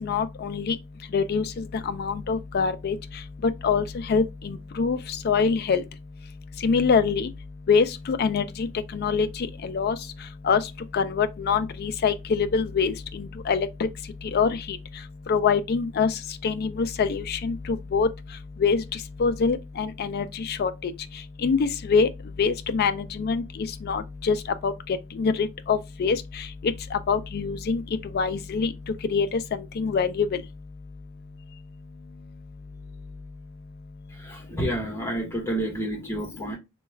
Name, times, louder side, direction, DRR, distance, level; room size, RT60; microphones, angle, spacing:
voice 1, 0.0-0.7 1.1-1.4 1.9-3.0 3.6-5.0 5.3-5.8 6.6-7.3 7.7-8.7 8.9-9.3 9.6-10.0 10.5-10.6 10.9-13.7 14.3-14.5 15.3-16.1 16.4-17.5 17.9-18.1 18.6-18.8 19.2-20.7 21.4-22.1 22.4-23.4 23.9-24.4 24.6-24.7 25.2-26.2 26.9-27.8 28.1-28.7 29.1-29.3 29.5-30.3, left 5 dB, 45° left, 0.3 m, -24 dB
voice 2, 34.1-36.6, right 1 dB, 10° left, 1.1 m, -30 dB
3.2 x 2.3 x 3.2 m
head